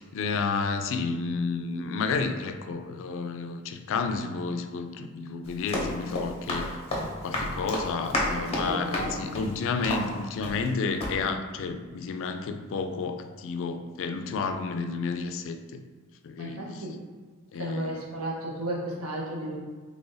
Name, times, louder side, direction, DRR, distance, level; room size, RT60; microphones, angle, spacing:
voice 1, 0.0-6.8 7.2-15.8 16.2-16.8 17.5-17.9, left 4 dB, 60° left, 8 dB, 0.3 m, -31 dB
Run, 5.4-10.7 11.0-11.2, left 1 dB, 30° left, 0.8 m, -32 dB
voice 2, 7.0-7.6 8.5-9.4 16.4-17.0 17.5-19.6, right 1 dB, 80° right, -2 dB, 0.9 m, -34 dB
3.3 x 2.5 x 3.8 m, 1.5 s
head